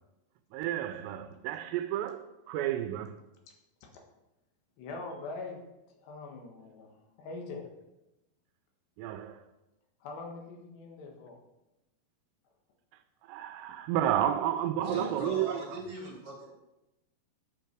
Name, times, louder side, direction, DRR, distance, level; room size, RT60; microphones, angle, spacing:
voice 1, 0.5-3.2 9.0-9.4 13.3-15.8, right 11 dB, 85° right, 2.7 m, -31 dB
voice 2, 4.8-5.6 6.0-6.9 7.2-7.7 10.0-11.4, left 3 dB, 75° left, 3.5 m, -42 dB
voice 3, 14.8-16.4, right 1 dB, 40° right, 2.7 m, -39 dB
11.0 x 5.7 x 4.6 m
omnidirectional pair, 4.9 m